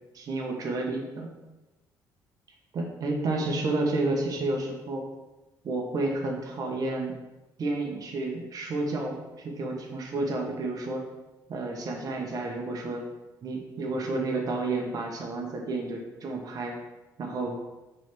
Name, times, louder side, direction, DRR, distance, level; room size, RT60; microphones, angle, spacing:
voice 1, 0.1-1.3 2.7-5.0 5.6-7.1 7.6-11.0 11.5-13.1 13.4-16.7 17.2-17.6, right 2 dB, 50° right, 1 dB, 1.2 m, -30 dB
6.1 x 3.5 x 5.9 m, 1.1 s
cardioid pair, 90°, 8 cm